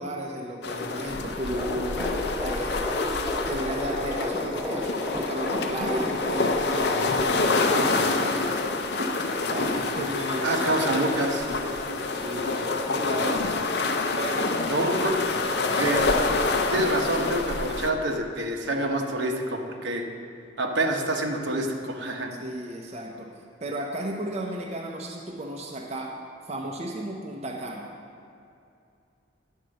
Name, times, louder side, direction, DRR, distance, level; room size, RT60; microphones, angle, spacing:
voice 1, 0.0-2.1 2.4-2.9 3.4-8.6 9.0-11.3 12.1-13.5 14.2-14.5 22.4-23.3 23.6-26.1 26.5-27.9, right 1 dB, 35° right, 0 dB, 0.6 m, -34 dB
sound 1, 0.6-17.9, left 3 dB, 60° left, 0.6 m, -27 dB
sound 2, 1.5-6.5, left 1 dB, 5° right, 1.0 m, -33 dB
voice 2, 10.4-12.0 14.7-15.2 15.8-16.1 16.7-20.0 20.6-22.3, right 1 dB, 70° right, 2 dB, 1.0 m, -27 dB
10.0 x 4.5 x 6.4 m, 2.5 s
head